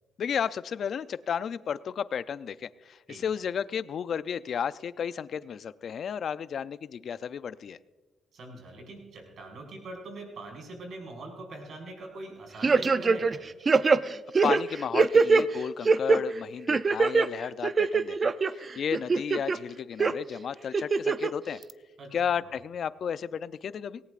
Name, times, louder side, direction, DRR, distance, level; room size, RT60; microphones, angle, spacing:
voice 1, 0.2-7.8 14.4-21.6 22.1-24.0, left 7 dB, 55° left, 15 dB, 0.4 m, -33 dB
voice 2, 8.3-13.4 22.0-22.1, right 2 dB, 60° right, 1 dB, 5.2 m, -43 dB
sound 1, 12.6-13.4 13.7-15.4 15.8-16.2 16.7-17.3 17.6-18.5 18.9-19.6 20.0-20.1 20.7-21.3 21.7-21.8, right 4 dB, 35° right, 0.5 m, -22 dB
18.5 x 18.0 x 2.5 m, 1.3 s
cardioid pair, 90°, 0 cm